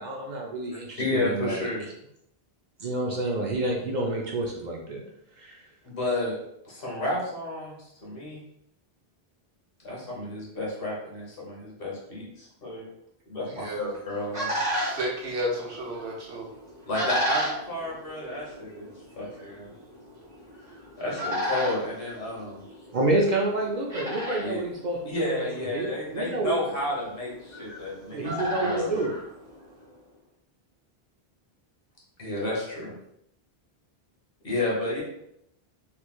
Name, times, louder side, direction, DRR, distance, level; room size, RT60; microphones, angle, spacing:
voice 1, 0.0-1.7 2.8-5.0 5.4-5.6 22.9-26.7 28.1-29.1, right 2 dB, 55° right, -1 dB, 0.6 m, -28 dB
voice 2, 1.0-1.9 5.8-6.4 6.6-7.8 8.0-8.4 9.8-12.8 13.3-14.6 16.9-19.7 21.0-22.6 24.4-24.6 25.1-29.0 32.2-32.9 34.4-35.0, left 2 dB, 65° left, -4 dB, 1.3 m, -31 dB
voice 3, 13.5-14.0 14.5-16.5, equal, 90° right, -1 dB, 1.0 m, -32 dB
sound 1, 13.7-29.9, equal, 30° right, 1.5 m, -35 dB
3.2 x 3.0 x 2.2 m, 0.76 s
omnidirectional pair, 1.1 m